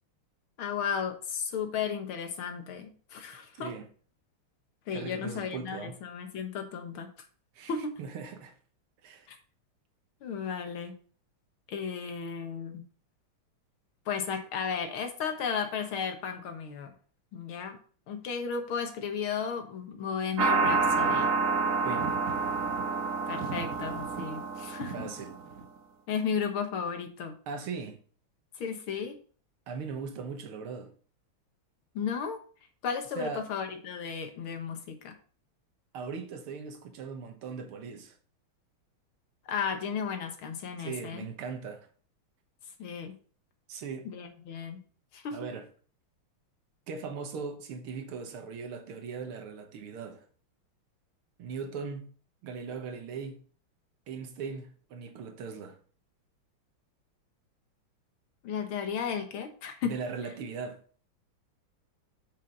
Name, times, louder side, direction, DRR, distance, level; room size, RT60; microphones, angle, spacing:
voice 1, 0.6-3.7 4.9-7.1 7.7-7.9 9.3-9.4 10.2-10.9 11.7-12.8 14.1-16.9 17.3-17.8 18.1-21.3 23.3-25.1 26.1-27.4 28.6-29.2 32.0-32.4 32.8-35.1 39.5-41.3 42.8-43.1 44.0-44.8 45.1-45.4 58.4-60.0, left 6 dB, 75° left, 2.1 m, -34 dB
voice 2, 4.9-6.0 7.6-7.7 8.0-8.6 9.0-9.3 21.8-22.1 24.9-25.4 27.5-28.0 29.7-30.9 33.2-33.5 35.9-38.2 40.8-41.9 43.7-44.1 45.3-45.7 46.9-50.2 51.4-52.1 52.4-53.4 54.1-55.8 59.8-60.8, right 5 dB, 85° right, 2.1 m, -39 dB
sound 1, 20.4-25.6, right 4 dB, 60° right, 0.9 m, -28 dB
7.5 x 6.7 x 4.0 m
omnidirectional pair, 2.3 m